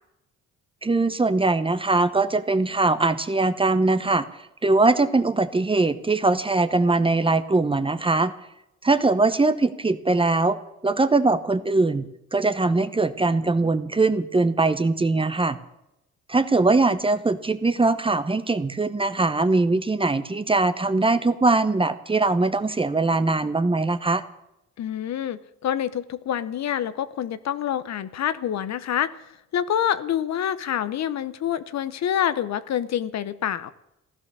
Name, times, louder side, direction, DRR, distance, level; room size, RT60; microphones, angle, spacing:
voice 1, 0.8-4.3 4.6-8.3 8.8-10.6 10.8-15.6 16.3-24.2, right 3 dB, 15° right, 12 dB, 0.9 m, -21 dB
voice 2, 24.8-29.1 29.5-33.7, left 10 dB, 65° left, 14 dB, 0.8 m, -27 dB
15.5 x 11.5 x 6.8 m, 0.87 s
cardioid pair, 90°, 30 cm